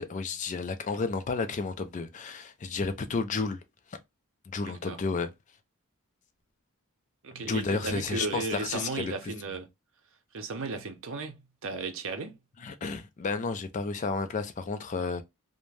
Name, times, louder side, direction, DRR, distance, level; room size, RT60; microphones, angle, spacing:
voice 1, 0.0-3.6 4.5-5.3 7.5-9.1 12.6-15.2, left 4 dB, 35° left, 0.3 m, -32 dB
voice 2, 4.6-5.0 7.2-9.7 10.3-12.4, right 3 dB, 60° right, 0.6 m, -35 dB
2.5 x 2.1 x 3.1 m
head